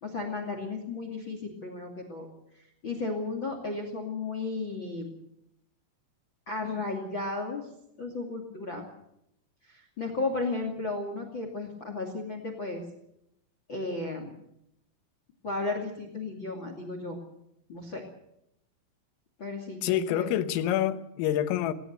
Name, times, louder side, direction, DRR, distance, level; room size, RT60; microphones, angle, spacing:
voice 1, 0.0-2.3 2.8-5.1 6.5-7.7 8.0-8.9 9.6-12.8 13.7-14.3 15.4-17.2 17.7-18.0 19.4-20.3, left 3 dB, 35° left, 6 dB, 2.0 m, -34 dB
voice 2, 19.8-21.7, left 11 dB, 85° left, 10 dB, 3.8 m, -27 dB
19.0 x 18.5 x 8.0 m, 0.79 s
omnidirectional pair, 5.8 m